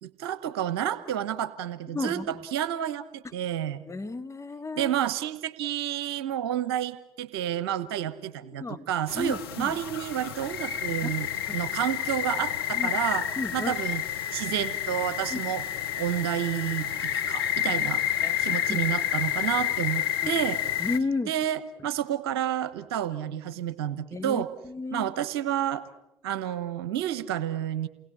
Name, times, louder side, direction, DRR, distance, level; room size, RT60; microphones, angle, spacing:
voice 1, 0.0-3.8 4.8-11.3 11.5-13.3 13.5-14.0 14.3-15.6 16.0-18.0 18.4-20.6 21.3-24.5 24.9-25.8 26.2-27.9, right 11 dB, 85° right, 14 dB, 1.0 m, -30 dB
voice 2, 1.9-2.3 3.2-3.3 3.9-4.9 8.6-8.9 9.2-9.8 11.0-11.1 12.7-12.9 13.4-13.8 15.3-15.4 18.2-18.4 18.7-18.9 20.2-20.4 20.8-21.3 24.1-25.1, left 3 dB, 25° left, 9 dB, 1.7 m, -33 dB
sound 1, 9.1-21.0, left 11 dB, 90° left, 0.9 m, -30 dB
29.0 x 20.0 x 9.9 m, 0.89 s
hypercardioid pair, 50°, 13 cm